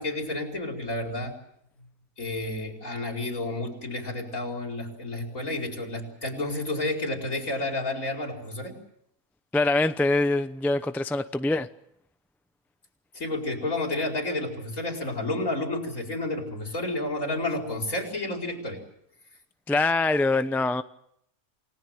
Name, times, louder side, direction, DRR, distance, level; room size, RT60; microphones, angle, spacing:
voice 1, 0.0-1.3 2.2-8.7 13.1-18.8, left 2 dB, 60° left, 5.2 m, -31 dB
voice 2, 9.5-11.7 19.7-20.8, left 2 dB, ahead, 0.5 m, -24 dB
29.0 x 19.0 x 7.7 m
omnidirectional pair, 1.5 m